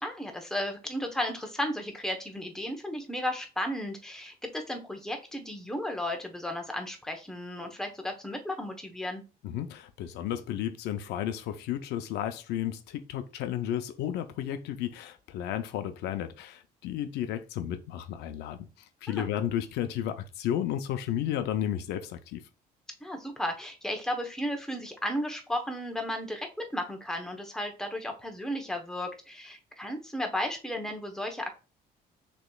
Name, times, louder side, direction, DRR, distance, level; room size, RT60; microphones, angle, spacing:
voice 1, 0.0-9.2 19.1-19.3 23.0-31.5, left 1 dB, 5° left, 1.0 m, -34 dB
voice 2, 9.4-18.7 19.0-22.4, left 11 dB, 85° left, 0.6 m, -33 dB
6.4 x 3.0 x 2.3 m
cardioid pair, 110°, 17 cm